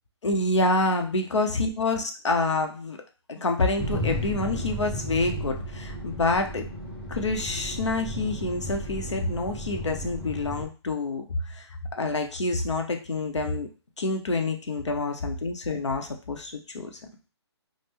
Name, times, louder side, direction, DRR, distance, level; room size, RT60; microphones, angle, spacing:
voice 1, 0.2-3.0 3.3-6.7 7.1-11.2 12.0-13.7 14.0-17.0, left 2 dB, 85° left, 4 dB, 0.7 m, -27 dB
sound 1, 3.8-10.7, right 1 dB, 10° left, 0.7 m, -34 dB
3.4 x 2.1 x 3.3 m, 0.35 s
figure-of-eight pair, 140°, 15 cm